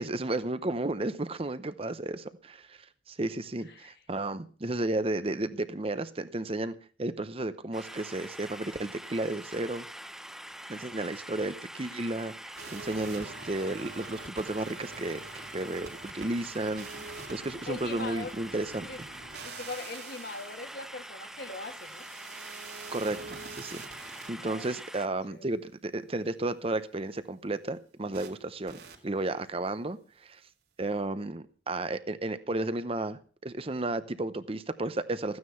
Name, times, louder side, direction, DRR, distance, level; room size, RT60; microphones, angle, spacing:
voice 1, 0.0-6.7 7.0-9.9 10.7-19.1 22.9-23.8 24.3-30.4 30.8-35.4, right 2 dB, 35° right, 12 dB, 0.8 m, -33 dB
sound 1, 7.7-25.1, right 1 dB, 5° right, 0.6 m, -45 dB
sound 2, 12.6-24.3 28.1-28.3 28.7-29.0, right 4 dB, 65° right, 3.0 m, -46 dB
voice 2, 17.7-18.3 18.9-19.0 19.4-22.1 24.4-24.8 25.3-25.5, left 3 dB, 60° left, 5 dB, 2.2 m, -41 dB
15.0 x 9.6 x 5.7 m, 0.41 s
head